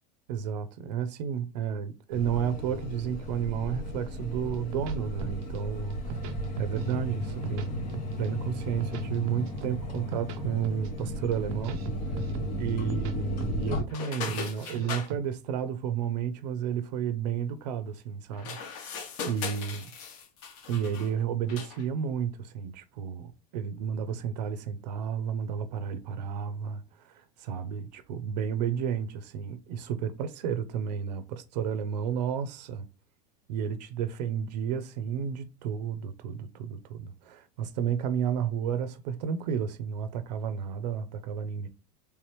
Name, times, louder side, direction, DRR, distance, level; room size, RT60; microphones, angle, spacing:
voice 1, 0.3-6.2 6.6-7.7 8.2-11.8 12.6-18.6 19.2-19.9 20.7-32.9 33.5-41.7, right 8 dB, 80° right, 0.6 m, -32 dB
sound 1, 2.1-13.8, left 1 dB, 85° left, 1.9 m, -34 dB
sound 2, 4.2-5.6 5.9-7.0 7.3-8.3 8.6-10.4 10.6-11.0 11.3-13.1 13.4-13.8 14.1-15.2, right 6 dB, 40° right, 0.4 m, -38 dB
sound 3, 13.9-15.1 18.3-21.1 21.5-21.8, left 6 dB, 50° left, 0.9 m, -38 dB
3.4 x 3.0 x 3.2 m
supercardioid pair, 175°, 21 cm